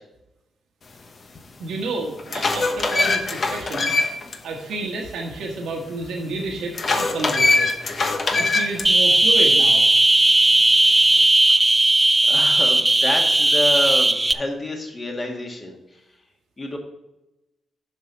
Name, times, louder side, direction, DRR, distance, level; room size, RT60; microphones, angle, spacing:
sound 1, 1.4-1.5 2.0-4.4 4.7-4.8 6.7-8.9, left 3 dB, 55° left, 1.1 m, -22 dB
voice 1, 1.6-3.9 4.4-7.7 8.4-9.8, right 2 dB, 85° right, 0 dB, 1.3 m, -30 dB
sound 2, 8.8-14.3, right 2 dB, 25° right, 0.5 m, -16 dB
voice 2, 12.3-16.0 16.6-16.8, left 1 dB, 35° left, 1 dB, 2.0 m, -28 dB
7.2 x 5.5 x 6.1 m, 0.95 s
supercardioid pair, 50°, 0 cm